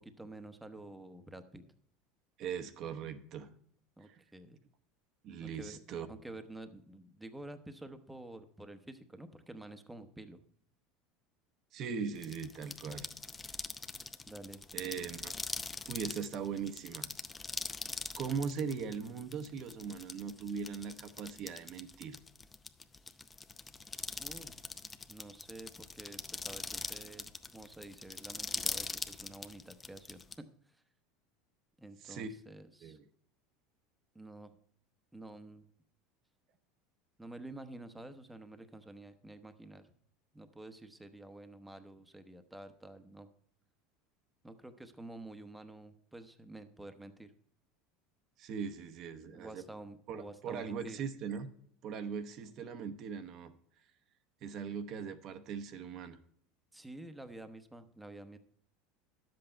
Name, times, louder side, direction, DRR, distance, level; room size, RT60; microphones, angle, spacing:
voice 1, 0.0-1.6 4.0-4.6 5.4-5.8 6.1-10.4 14.3-14.6 24.2-24.6 25.1-30.5 31.8-33.0 34.1-34.5 35.1-35.7 37.2-39.8 40.3-43.3 44.4-47.3 49.3-51.0 56.7-58.4, right 2 dB, 5° right, 8 dB, 0.9 m, -49 dB
voice 2, 2.4-3.5 4.0-4.2 5.2-6.1 11.7-13.1 14.7-15.3 15.9-17.1 18.2-22.2 32.0-32.3 32.8-33.0 48.4-49.6 50.1-51.5 51.8-53.5 54.4-56.2, right 6 dB, 50° right, 8 dB, 0.9 m, -40 dB
sound 1, 12.2-30.3, left 4 dB, 15° left, 0.6 m, -42 dB
10.5 x 7.8 x 4.4 m, 0.65 s
supercardioid pair, 115°, 0 cm